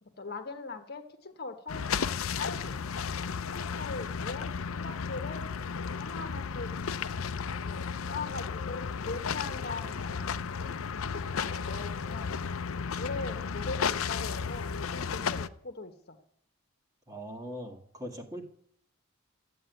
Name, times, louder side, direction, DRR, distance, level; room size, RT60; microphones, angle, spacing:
voice 1, 0.0-1.8 2.4-2.8 3.5-5.5 5.9-6.7 7.6-10.7 11.0-12.3 13.0-16.2, left 3 dB, 50° left, 6 dB, 1.3 m, -41 dB
sound 1, 1.7-15.5, left 6 dB, 85° left, 0.6 m, -34 dB
voice 2, 17.1-18.4, equal, 15° right, 4 dB, 1.9 m, -41 dB
13.5 x 8.9 x 9.2 m, 0.66 s
head